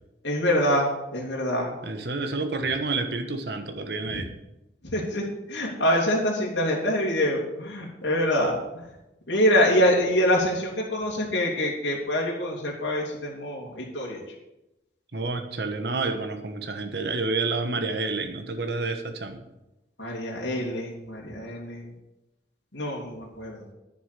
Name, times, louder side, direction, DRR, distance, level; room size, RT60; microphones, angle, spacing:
voice 1, 0.2-1.7 4.1-4.2 4.8-8.9 9.3-14.2 20.0-21.9 22.7-23.6, equal, 80° left, -2 dB, 2.8 m, -25 dB
voice 2, 1.8-4.3 15.1-19.4, right 3 dB, 65° right, 7 dB, 1.2 m, -29 dB
10.0 x 7.3 x 6.8 m, 0.94 s
head